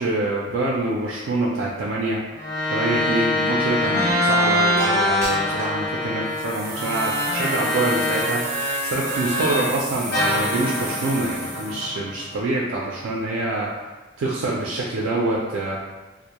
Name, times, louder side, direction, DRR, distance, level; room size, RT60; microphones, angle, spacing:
voice 1, 0.0-2.2 2.7-8.5 8.8-13.7 14.2-15.8, right 2 dB, 85° right, -4 dB, 0.3 m, -25 dB
sound 1, 2.4-9.8 10.1-12.5, left 1 dB, 55° left, 0.7 m, -24 dB
sound 2, 4.8-4.9 5.2-5.8 6.3-11.9, right 1 dB, 15° right, 0.4 m, -34 dB
2.1 x 2.0 x 2.8 m, 1.2 s
head